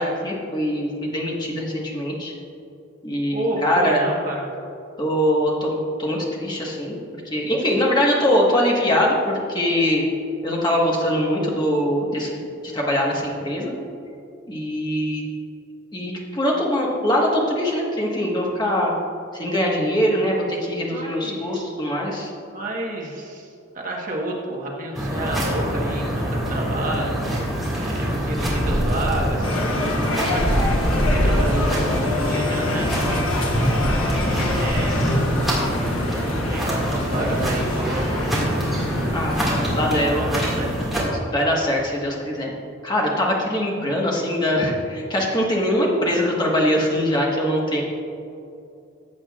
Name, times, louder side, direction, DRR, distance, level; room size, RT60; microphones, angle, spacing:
voice 1, 0.0-2.3 3.0-4.0 5.0-7.0 7.3-10.0 10.4-12.3 12.7-13.7 14.5-15.2 15.9-18.9 19.3-22.3 39.1-39.4 39.7-40.2 41.1-42.5 42.8-47.8, equal, 20° left, -2 dB, 1.3 m, -22 dB
voice 2, 3.3-4.4 20.9-21.6 22.5-23.5 23.7-27.1 27.8-29.6 30.0-30.4 30.9-33.2 34.3-34.9 36.5-38.8 39.4-40.8, right 1 dB, 40° right, -2 dB, 1.3 m, -30 dB
sound 1, 25.0-41.0, equal, ahead, 1.9 m, -25 dB
sound 2, 29.4-39.4, left 1 dB, 90° left, 1.3 m, -25 dB
15.0 x 7.7 x 2.4 m, 2.6 s
head